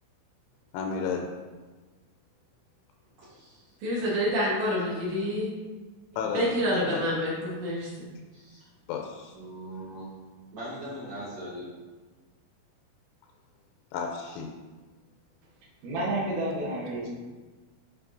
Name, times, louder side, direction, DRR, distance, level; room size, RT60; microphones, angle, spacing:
voice 1, 0.7-1.3 6.2-7.1 8.9-9.3 13.9-14.5, left 6 dB, 85° left, 2 dB, 3.0 m, -32 dB
voice 2, 3.2-3.8 8.3-8.6 9.3-10.1 10.5-11.7, right 1 dB, 50° right, -12 dB, 2.1 m, -40 dB
voice 3, 3.8-5.5 6.3-8.1, equal, 70° right, -5 dB, 3.3 m, -27 dB
voice 4, 15.8-17.1, right 1 dB, 90° right, -5 dB, 1.8 m, -30 dB
10.0 x 4.1 x 2.6 m, 1.3 s
omnidirectional pair, 5.8 m